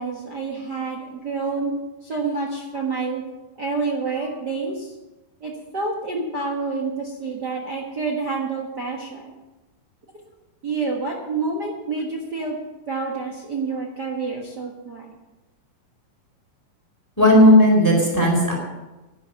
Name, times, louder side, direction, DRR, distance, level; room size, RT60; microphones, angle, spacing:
voice 1, 0.0-1.7 2.0-3.2 3.6-4.9 5.4-9.3 10.6-12.6 12.9-15.1, right 4 dB, 50° right, 0 dB, 1.2 m, -28 dB
voice 2, 17.2-18.5, left 1 dB, 5° left, -1 dB, 3.8 m, -14 dB
11.0 x 11.0 x 6.8 m, 1.1 s
omnidirectional pair, 4.2 m